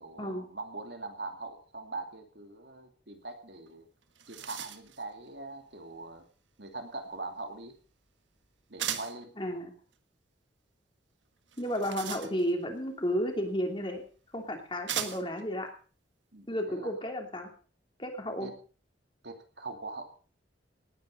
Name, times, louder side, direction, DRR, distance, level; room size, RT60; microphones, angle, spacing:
voice 1, 0.0-3.9 4.3-6.2 6.6-7.7 8.7-9.3 16.3-16.9 18.4-18.5 19.2-20.1, right 3 dB, 65° right, 5 dB, 2.7 m, -42 dB
sound 1, 3.7-3.8 4.0-5.0 8.8-9.2 11.5-12.7 13.8-13.9 14.9-15.4, right 10 dB, 85° right, 1.5 m, -37 dB
voice 2, 9.4-9.7 11.6-14.0 14.3-15.7 16.5-17.5 18.0-18.5, equal, 25° left, 3 dB, 3.0 m, -32 dB
18.5 x 9.7 x 5.4 m, 0.39 s
head